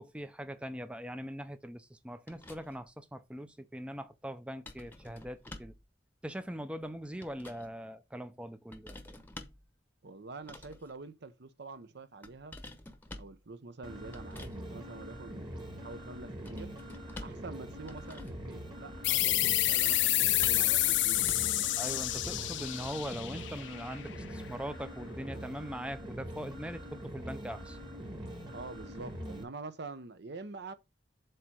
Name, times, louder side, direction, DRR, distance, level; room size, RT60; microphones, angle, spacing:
voice 1, 0.0-5.7 6.2-9.1 21.8-27.8, equal, 5° right, 0.5 m, -41 dB
sound 1, 2.3-2.9 4.7-5.9 6.9-7.7 8.7-9.7 10.4-10.9 12.2-13.4 14.1-14.6 16.5-17.5 17.8-18.5 20.4-21.6 21.9-22.1, left 2 dB, 10° left, 0.9 m, -49 dB
voice 2, 10.0-12.6 13.2-16.7 17.2-21.5 28.5-30.7, right 3 dB, 60° right, 0.7 m, -46 dB
sound 2, 13.8-29.4, equal, 25° right, 1.4 m, -44 dB
sound 3, 19.0-24.3, left 15 dB, 65° left, 0.5 m, -29 dB
7.8 x 2.9 x 6.2 m
head